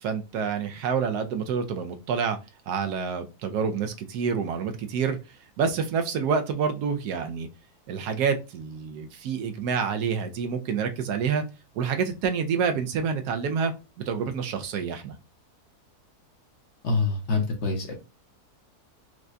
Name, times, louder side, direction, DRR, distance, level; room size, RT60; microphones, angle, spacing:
voice 1, 0.0-2.4 2.7-5.2 5.6-7.5 7.9-11.4 11.7-13.7 14.1-15.2, right 6 dB, 80° right, 1.1 m, -27 dB
voice 2, 16.8-17.9, left 3 dB, 55° left, 1.0 m, -25 dB
4.7 x 2.2 x 2.5 m
omnidirectional pair, 1.7 m